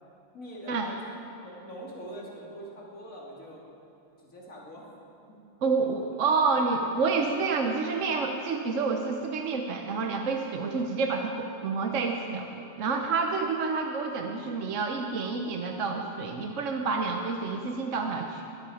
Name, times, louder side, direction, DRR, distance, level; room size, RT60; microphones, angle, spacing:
voice 1, 0.3-3.6 4.3-4.9 5.3-5.4, right 1 dB, 75° left, -5 dB, 3.1 m, -43 dB
voice 2, 5.6-18.4, right 4 dB, 65° right, 3 dB, 1.2 m, -28 dB
22.0 x 12.0 x 4.9 m, 2.8 s
omnidirectional pair, 1.4 m